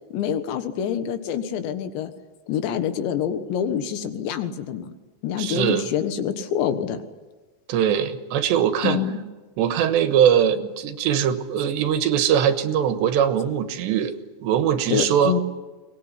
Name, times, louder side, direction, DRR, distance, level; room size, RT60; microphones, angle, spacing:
voice 1, 0.1-2.1 2.5-4.9 5.2-7.0 8.8-9.2 14.9-15.4, left 8 dB, 85° left, 9 dB, 3.7 m, -26 dB
voice 2, 5.4-5.9 7.7-9.0 9.6-14.1 14.4-15.4, right 9 dB, 85° right, 9 dB, 3.4 m, -21 dB
23.0 x 19.5 x 9.8 m, 1.2 s
omnidirectional pair, 5.0 m